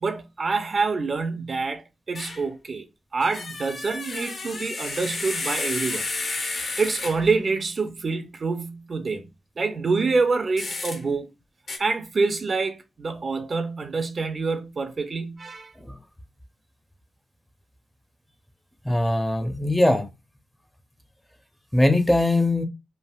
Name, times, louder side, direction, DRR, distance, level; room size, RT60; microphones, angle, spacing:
voice 1, 0.0-2.9 3.1-6.0 6.8-9.3 9.6-11.3 11.8-15.7, right 4 dB, 45° right, 0.4 m, -26 dB
sound 1, 2.1-2.4 3.2-7.4 10.6-11.0 11.7-11.8, left 3 dB, 55° left, 0.8 m, -31 dB
voice 2, 18.8-20.1 21.7-22.6, left 1 dB, 10° left, 0.5 m, -21 dB
3.3 x 2.4 x 2.2 m
cardioid pair, 70°, 0 cm